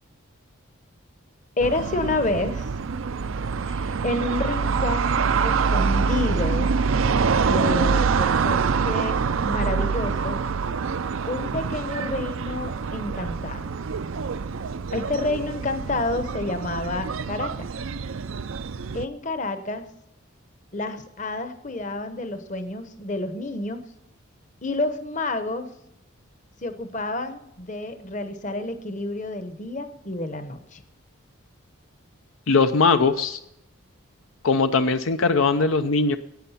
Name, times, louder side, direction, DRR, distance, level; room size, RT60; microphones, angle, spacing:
voice 1, 1.6-2.7 3.6-6.7 7.3-10.4 11.3-13.7 14.9-17.7 18.9-19.9 20.7-23.8 24.6-25.7 26.6-30.8, left 2 dB, 35° left, 9 dB, 0.9 m, -29 dB
sound 1, 1.6-19.0, right 5 dB, 70° right, 0.5 m, -25 dB
voice 2, 32.5-33.4 34.4-36.2, left 4 dB, 70° left, 9 dB, 0.6 m, -20 dB
11.5 x 8.7 x 5.6 m, 0.81 s
head